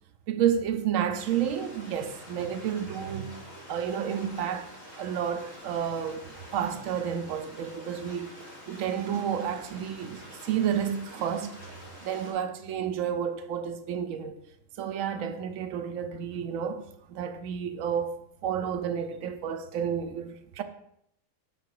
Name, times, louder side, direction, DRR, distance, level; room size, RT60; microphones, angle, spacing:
voice 1, 0.3-3.3 3.7-4.7 5.0-6.2 6.5-8.3 8.7-11.6 12.0-14.4 14.8-18.2 18.4-20.6, right 8 dB, 80° right, 0.9 m, -30 dB
Stream, 1.1-12.3, equal, 80° left, 2.3 m, -47 dB
6.8 x 3.8 x 4.8 m
omnidirectional pair, 1.4 m